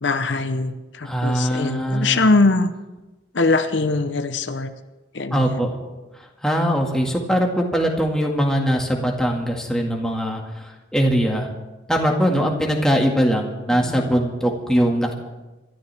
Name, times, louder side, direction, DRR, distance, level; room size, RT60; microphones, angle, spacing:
voice 1, 0.0-2.7 3.3-4.7 5.1-5.7 13.7-14.2, left 3 dB, 75° left, 9 dB, 0.8 m, -22 dB
voice 2, 1.0-2.2 5.3-5.8 6.4-10.4 10.9-11.5 11.9-15.1, equal, 5° left, 0 dB, 1.9 m, -21 dB
26.5 x 13.0 x 3.5 m, 1.1 s
head